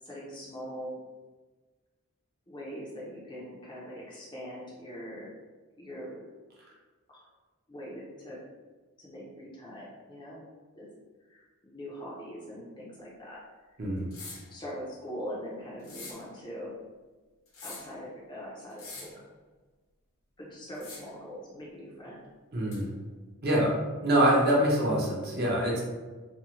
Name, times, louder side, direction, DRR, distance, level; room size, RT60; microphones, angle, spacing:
voice 1, 0.0-1.0 2.5-5.3 5.8-6.3 7.1-7.3 7.7-8.4 9.0-10.4 10.8-10.9 11.3-13.4 14.5-16.7 17.6-19.2 20.4-22.2 24.4-24.5, equal, 20° left, -5 dB, 0.4 m, -42 dB
sound 1, 14.1-14.5 15.8-16.2 17.5-17.9 18.7-19.2 20.7-21.2 22.7-22.8, left 3 dB, 65° left, 0.6 m, -44 dB
voice 2, 22.5-22.9 23.4-23.7 24.0-25.8, right 1 dB, 45° right, -3 dB, 0.6 m, -25 dB
2.6 x 2.1 x 2.8 m, 1.3 s
head